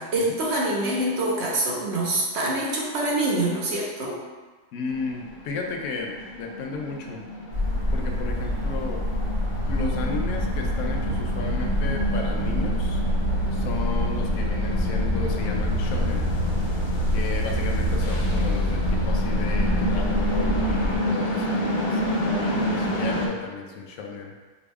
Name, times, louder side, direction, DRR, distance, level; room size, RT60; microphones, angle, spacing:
voice 1, 0.0-4.2, right 1 dB, 55° right, -3 dB, 1.0 m, -25 dB
voice 2, 4.7-7.2 7.9-9.0 9.7-13.0 13.5-16.3 17.1-24.3, left 4 dB, 85° left, 2 dB, 1.1 m, -34 dB
sound 1, 4.9-23.3, equal, 55° left, 0.5 m, -30 dB
sound 2, 7.5-21.0, equal, 25° right, 0.7 m, -26 dB
5.1 x 2.3 x 3.3 m, 1.3 s
omnidirectional pair, 1.5 m